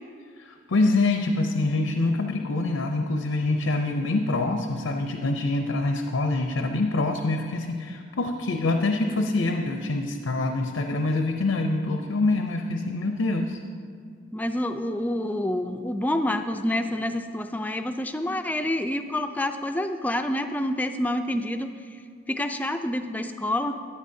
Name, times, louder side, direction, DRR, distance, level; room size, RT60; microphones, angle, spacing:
voice 1, 0.4-13.6, left 2 dB, 85° left, 4 dB, 0.6 m, -25 dB
voice 2, 14.3-21.7 22.3-23.8, left 1 dB, 10° left, 7 dB, 0.3 m, -27 dB
15.0 x 9.9 x 2.7 m, 2.2 s
head